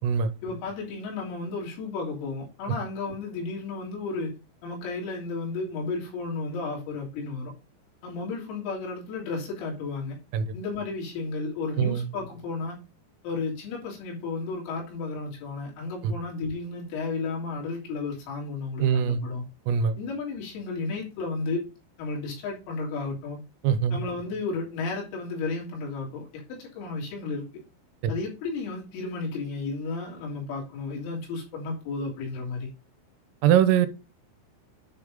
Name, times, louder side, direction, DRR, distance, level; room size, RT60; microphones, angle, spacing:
voice 1, 0.4-4.3 4.6-7.5 8.0-10.2 10.5-12.8 13.2-19.4 20.0-21.6 22.0-23.4 23.9-27.5 28.1-32.7, left 3 dB, 90° left, 5.9 m, -33 dB
voice 2, 18.8-19.2 19.7-19.9 23.6-24.0 28.0-28.1 33.4-33.9, right 8 dB, 90° right, 3.3 m, -22 dB
10.0 x 3.7 x 5.2 m
omnidirectional pair, 5.9 m